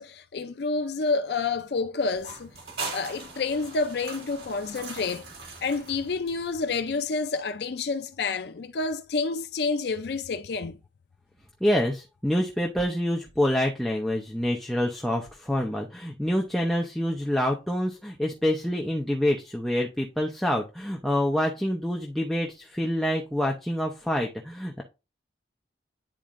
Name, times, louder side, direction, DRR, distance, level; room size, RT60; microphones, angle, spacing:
voice 1, 0.0-2.5 2.9-5.3 5.6-10.8, left 4 dB, 60° left, 0.4 m, -29 dB
sound 1, 2.2-6.7, right 4 dB, 55° right, 2.3 m, -40 dB
voice 2, 11.6-24.8, equal, ahead, 0.7 m, -27 dB
10.0 x 4.2 x 2.5 m
head